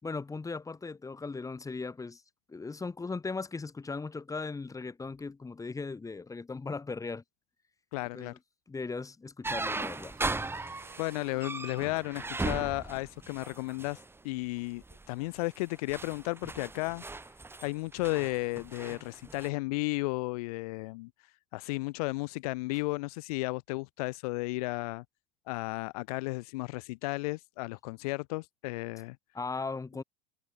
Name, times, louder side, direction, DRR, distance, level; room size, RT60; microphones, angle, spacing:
voice 1, 0.0-2.2 2.5-7.2 8.1-8.4 8.7-10.2 29.3-30.0, left 4 dB, 15° left, 4.6 m, -38 dB
voice 2, 7.9-8.3 11.0-17.0 17.6-25.0 25.5-29.2, left 24 dB, 75° left, 0.6 m, -34 dB
sound 1, 9.4-14.1 14.8-15.1 15.5-19.5, right 3 dB, 10° right, 3.6 m, -37 dB
sound 2, 10.1-14.8, right 18 dB, 80° right, 5.9 m, -58 dB
supercardioid pair, 95°, 19 cm